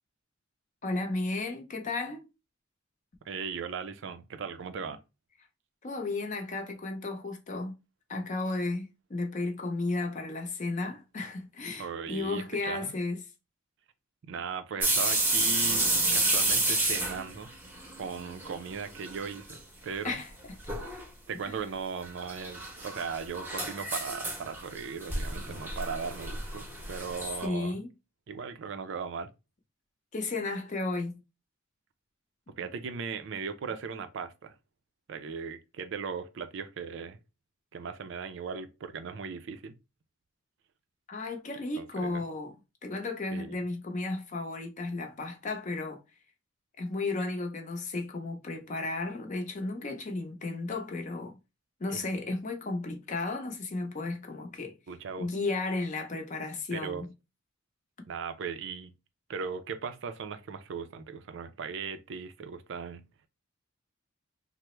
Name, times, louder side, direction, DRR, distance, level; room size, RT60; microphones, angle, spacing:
voice 1, 0.8-2.2 5.8-7.7 8.1-13.2 20.0-20.3 21.5-21.6 27.4-27.9 30.1-31.2 41.1-42.5 42.8-46.0 46.8-51.4 51.8-54.7 55.2-57.1, left 2 dB, 40° left, 0.6 m, -34 dB
voice 2, 3.3-5.0 11.8-12.9 14.2-17.5 18.0-19.6 19.8-20.2 21.3-27.8 28.3-29.3 32.6-34.5 35.1-37.2 37.7-39.8 41.8-42.2 43.3-43.6 51.9-52.0 54.9-55.3 56.7-57.1 58.1-58.9 59.3-63.0, right 5 dB, 65° right, 0.4 m, -38 dB
sound 1, 14.8-18.6 18.9-19.6 19.9-20.0 20.7-21.0 22.0-27.5, right 2 dB, 10° right, 0.7 m, -30 dB
3.3 x 2.0 x 3.0 m
head